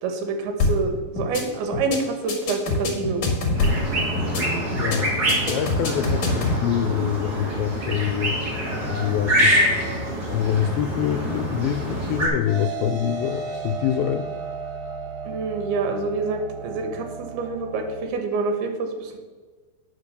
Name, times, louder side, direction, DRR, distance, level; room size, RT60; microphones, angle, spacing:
voice 1, 0.0-3.2 15.2-19.2, right 4 dB, 80° right, 4 dB, 3.1 m, -27 dB
sound 1, 0.6-0.9 1.2-1.4 1.7-2.0 2.3-3.9 4.2-4.4 4.7-5.0 5.3-6.6, left 3 dB, 45° left, 1.6 m, -24 dB
sound 2, 3.5-12.3, equal, 35° right, 1.9 m, -25 dB
voice 2, 4.8-5.1 5.4-8.4 8.9-9.6 10.3-14.3, left 10 dB, 80° left, 6 dB, 2.3 m, -25 dB
sound 3, 12.5-18.1, right 4 dB, 60° right, 2.4 m, -34 dB
9.4 x 5.2 x 6.6 m, 1.4 s
omnidirectional pair, 4.5 m